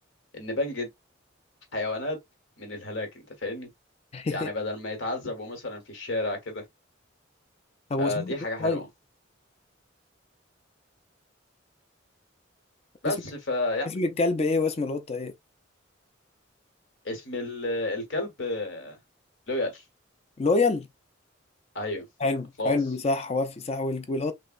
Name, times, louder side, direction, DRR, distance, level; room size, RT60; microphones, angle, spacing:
voice 1, 0.3-0.9 1.7-2.2 2.6-3.7 4.3-6.6 8.0-8.9 13.0-13.9 17.0-19.0 19.5-19.8 21.7-22.0 22.6-22.8, left 2 dB, 65° left, 1.1 m, -31 dB
voice 2, 4.1-4.5 7.9-8.3 8.6-8.8 13.1-13.2 13.9-15.3 20.4-20.9 22.2-24.3, left 3 dB, 30° left, 0.5 m, -26 dB
3.4 x 2.0 x 2.4 m
head